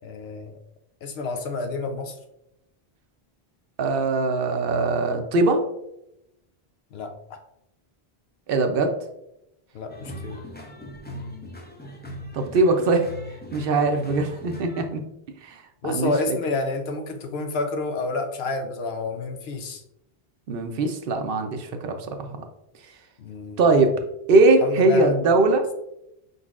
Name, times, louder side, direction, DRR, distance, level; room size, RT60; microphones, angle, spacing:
voice 1, 0.0-0.6 1.0-2.1 6.9-7.4 9.7-10.5 15.8-19.8 23.2-23.6 24.6-25.3, left 3 dB, 80° left, 6 dB, 0.9 m, -29 dB
voice 2, 3.8-5.6 8.5-8.9 12.3-13.1 13.5-15.0 15.4-15.6 15.8-16.4 20.5-22.4 23.6-24.0 24.3-25.7, right 3 dB, 65° right, 6 dB, 0.7 m, -21 dB
sound 1, 9.9-14.9, left 1 dB, 15° left, 0.4 m, -39 dB
5.0 x 3.9 x 2.4 m, 0.84 s
omnidirectional pair, 1.1 m